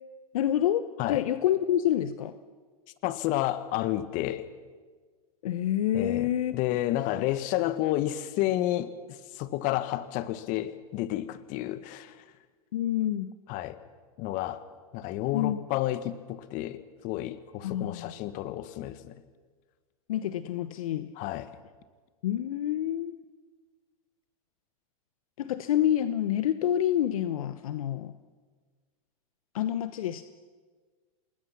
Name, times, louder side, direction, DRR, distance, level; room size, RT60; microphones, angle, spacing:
voice 1, 0.3-2.4 5.4-6.5 12.7-13.3 15.3-15.6 17.6-18.1 20.1-21.1 22.2-23.2 25.4-28.1 29.5-30.3, left 11 dB, 70° left, 12 dB, 0.9 m, -27 dB
voice 2, 3.0-4.4 5.9-8.9 9.4-12.1 13.5-13.8 14.2-14.6 14.9-16.8 17.0-19.1 21.2-21.5, left 14 dB, 45° left, 12 dB, 1.5 m, -30 dB
28.5 x 20.5 x 5.9 m, 1.5 s
hypercardioid pair, 105°, 19 cm